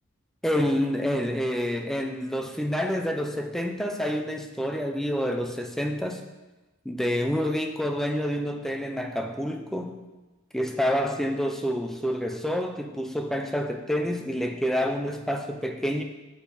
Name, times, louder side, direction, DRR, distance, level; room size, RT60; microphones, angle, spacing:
voice 1, 0.4-6.2 6.9-10.0 10.5-16.0, equal, ahead, 4 dB, 0.3 m, -28 dB
8.1 x 4.1 x 4.0 m, 1.2 s
head